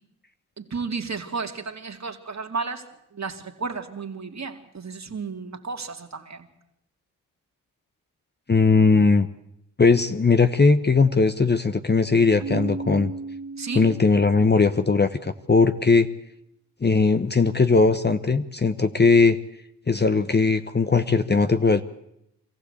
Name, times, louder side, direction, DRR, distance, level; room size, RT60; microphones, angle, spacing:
voice 1, 0.6-2.8 3.1-6.5 13.6-13.9, right 4 dB, 40° right, 5 dB, 2.7 m, -33 dB
voice 2, 8.5-9.3 9.8-13.1 13.7-16.1 16.8-19.4 19.9-21.8, left 4 dB, 25° left, 10 dB, 1.0 m, -19 dB
Keyboard (musical), 12.4-15.0, right 3 dB, 70° right, 2.6 m, -35 dB
24.0 x 15.0 x 8.4 m, 0.80 s
supercardioid pair, 45°, 42 cm